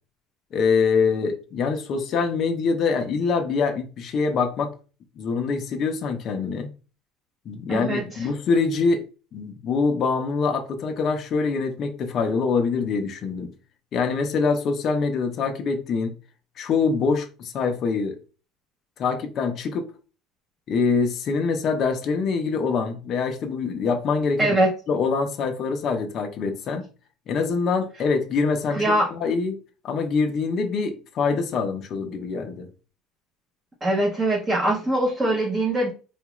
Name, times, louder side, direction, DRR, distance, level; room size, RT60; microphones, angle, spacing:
voice 1, 0.5-4.7 5.2-6.7 7.5-9.0 9.3-13.5 13.9-16.1 16.6-18.2 19.0-19.9 20.7-24.6 24.9-26.9 27.3-29.6 29.8-32.7, left 5 dB, 35° left, 0.5 m, -24 dB
voice 2, 7.7-8.3 24.4-24.7 28.7-29.1 33.8-35.9, right 1 dB, 15° right, 0.6 m, -22 dB
3.9 x 2.3 x 3.0 m
cardioid pair, 160°, 0 cm